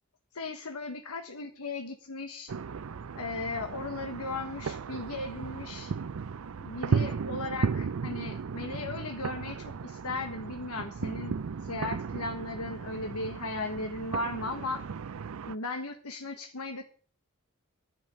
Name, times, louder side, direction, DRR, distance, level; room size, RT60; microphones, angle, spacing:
voice 1, 0.3-2.5 3.2-5.9 6.6-11.3 11.6-14.8 15.5-16.8, left 2 dB, 85° left, 5 dB, 1.3 m, -36 dB
sound 1, 2.5-15.6, right 5 dB, 70° right, 0.5 m, -35 dB
10.5 x 6.1 x 8.7 m, 0.41 s
head